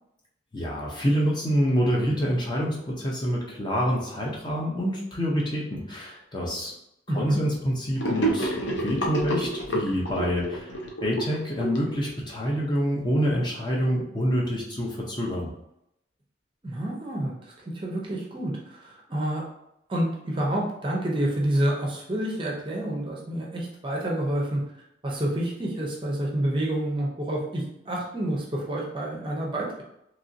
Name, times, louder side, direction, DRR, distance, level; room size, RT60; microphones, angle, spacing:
voice 1, 0.5-6.7 7.1-15.5, equal, 25° left, -3 dB, 0.5 m, -27 dB
voice 2, 7.1-7.4 16.6-19.5 19.9-24.6 25.0-29.8, right 1 dB, 25° right, -2 dB, 0.5 m, -28 dB
Gurgling / Sink (filling or washing), 8.0-12.5, right 2 dB, 75° left, 0.6 m, -29 dB
3.0 x 2.6 x 2.6 m, 0.82 s
head